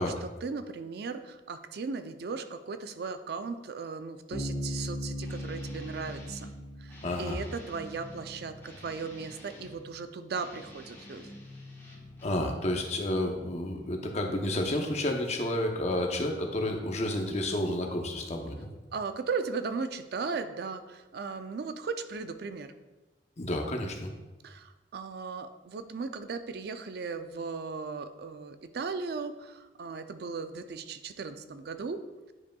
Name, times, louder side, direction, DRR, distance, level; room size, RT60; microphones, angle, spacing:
voice 1, 0.0-6.5 6.8-11.3 18.9-22.7 24.4-32.0, right 4 dB, 65° right, 9 dB, 0.4 m, -37 dB
Bass guitar, 4.3-7.9, equal, 85° left, 1.7 m, -38 dB
Guitar, 5.2-6.5 6.9-9.8 10.3-12.5, left 1 dB, 15° left, 1.3 m, -48 dB
voice 2, 7.0-7.4 12.2-18.7 23.4-24.1, left 1 dB, 40° left, 2 dB, 0.8 m, -30 dB
9.5 x 5.2 x 2.3 m, 1.2 s
head